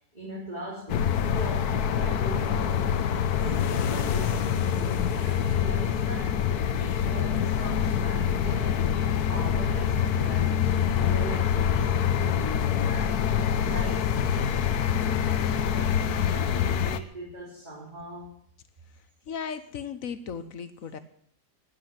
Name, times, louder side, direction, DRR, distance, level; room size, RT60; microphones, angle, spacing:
voice 1, 0.1-2.9 3.4-13.2 13.6-18.4, right 1 dB, 25° right, -5 dB, 3.8 m, -40 dB
sound 1, 0.9-17.0, left 8 dB, 75° left, 1.4 m, -25 dB
voice 2, 19.3-21.0, left 6 dB, 60° left, 12 dB, 1.3 m, -36 dB
13.0 x 9.2 x 9.7 m, 0.63 s
omnidirectional pair, 1.7 m